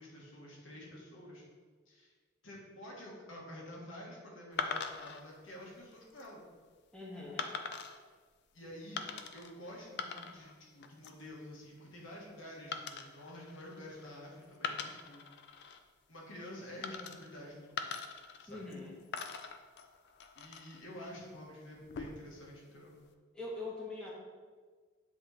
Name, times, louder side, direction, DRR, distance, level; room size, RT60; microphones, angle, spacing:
voice 1, 0.0-1.4 1.9-2.1 2.4-6.4 7.2-7.3 8.5-15.3 16.1-18.0 18.4-18.6 20.3-22.9, left 1 dB, 75° left, -2 dB, 1.4 m, -49 dB
sound 1, 4.6-5.2 5.9-6.3 7.4-8.0 9.0-9.5 9.8-10.5 10.8-11.3 12.7-14.2 14.5-15.8 16.8-17.4 17.8-18.8 19.1-20.8 21.8-22.4, left 5 dB, 60° left, 0.4 m, -42 dB
voice 2, 6.9-7.5 18.5-19.0 23.3-24.1, left 2 dB, 5° left, -5 dB, 1.2 m, -43 dB
7.9 x 3.1 x 4.0 m, 1.5 s
head